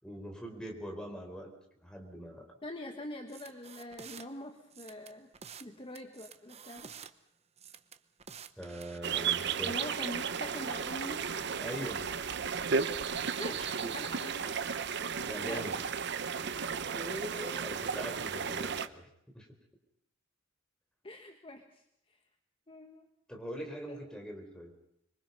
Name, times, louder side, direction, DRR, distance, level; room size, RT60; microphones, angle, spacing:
voice 1, 0.0-1.5 1.8-2.5 8.6-9.8 11.6-12.1 13.6-13.9 15.2-15.8 16.4-16.6 16.9-19.0 19.3-19.5 23.3-24.7, equal, 5° left, 2 dB, 4.0 m, -42 dB
voice 2, 2.6-5.3 5.6-6.9 9.6-11.2 13.3-14.5 15.4-15.7 21.0-22.2 22.7-23.1, left 1 dB, 30° left, 4 dB, 1.5 m, -44 dB
sound 1, 3.3-4.3 4.7-5.7 6.0-7.1 7.6-9.0, right 7 dB, 35° right, 0.9 m, -50 dB
sound 2, 9.0-18.9, right 6 dB, 60° right, 0.8 m, -34 dB
25.5 x 23.0 x 5.4 m, 0.78 s
head